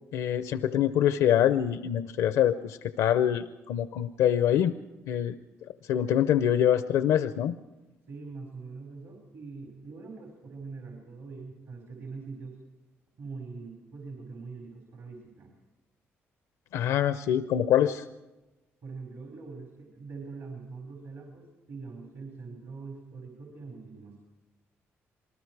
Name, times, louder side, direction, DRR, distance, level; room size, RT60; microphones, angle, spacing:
voice 1, 0.1-4.7 5.1-5.3 5.9-7.6 16.7-18.1, left 10 dB, 85° left, 12 dB, 0.6 m, -25 dB
voice 2, 8.1-12.6 13.2-15.5 18.8-24.2, right 4 dB, 70° right, 1 dB, 4.9 m, -43 dB
27.5 x 20.0 x 4.7 m, 1.1 s
supercardioid pair, 70°, 5 cm